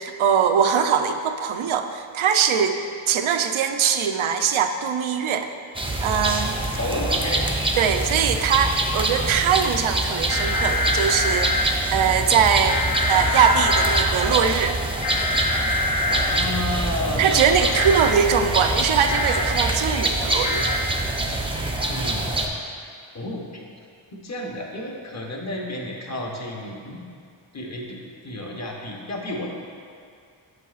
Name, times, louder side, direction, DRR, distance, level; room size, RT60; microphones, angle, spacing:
voice 1, 0.0-2.8 3.1-5.5 6.0-6.6 7.8-11.6 11.9-12.8 13.1-14.8 17.1-20.7, right 7 dB, 80° right, 7 dB, 0.5 m, -21 dB
sound 1, 5.7-22.5, right 1 dB, 10° right, 0.5 m, -25 dB
voice 2, 6.8-7.5 16.1-18.0 21.9-22.3 23.1-23.6 24.1-27.0 27.5-29.5, left 1 dB, 35° left, -1 dB, 0.9 m, -31 dB
sound 2, 10.3-11.7 12.7-14.0 15.0-16.4 17.8-18.1 19.1-19.4 20.4-20.8, left 2 dB, 65° left, 0.7 m, -25 dB
8.1 x 7.0 x 2.4 m, 2.3 s
wide cardioid pair, 100°, 47 cm